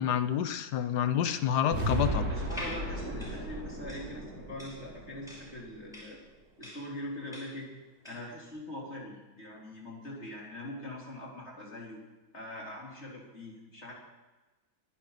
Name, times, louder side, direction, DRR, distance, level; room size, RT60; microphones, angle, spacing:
voice 1, 0.0-2.3, left 9 dB, 80° left, 11 dB, 1.4 m, -28 dB
sound 1, 1.7-5.9, right 2 dB, 70° right, 3.3 m, -35 dB
voice 2, 2.3-6.2 6.6-7.7 8.0-12.0 12.3-13.9, left 1 dB, 40° left, -3 dB, 3.8 m, -42 dB
sound 2, 2.4-8.4, left 1 dB, ahead, 6.0 m, -46 dB
22.5 x 11.0 x 4.0 m, 1.1 s
omnidirectional pair, 1.7 m